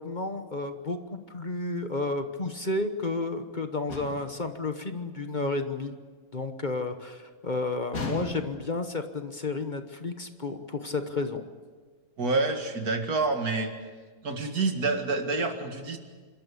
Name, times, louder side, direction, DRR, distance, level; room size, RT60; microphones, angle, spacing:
voice 1, 0.0-5.9 6.3-11.4, left 3 dB, 35° left, 7 dB, 1.2 m, -32 dB
sound 1, 3.9-4.4 7.9-8.7, left 2 dB, 70° left, 2.8 m, -36 dB
voice 2, 12.2-13.7 14.2-16.0, right 3 dB, 85° right, 5 dB, 2.5 m, -27 dB
27.0 x 13.0 x 8.4 m, 1.5 s
omnidirectional pair, 1.5 m